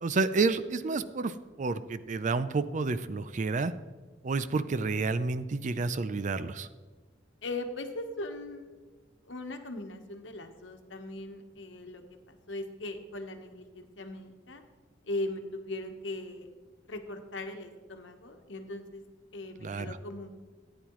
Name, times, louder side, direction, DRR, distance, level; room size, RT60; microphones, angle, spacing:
voice 1, 0.0-3.7 4.2-6.7 19.6-20.0, right 3 dB, 40° right, 13 dB, 0.4 m, -30 dB
voice 2, 7.4-8.6 9.2-12.0 12.3-14.6 15.0-16.5 16.9-19.0 19.3-20.4, left 2 dB, 75° left, 6 dB, 1.1 m, -39 dB
14.0 x 9.5 x 3.1 m, 1.4 s
head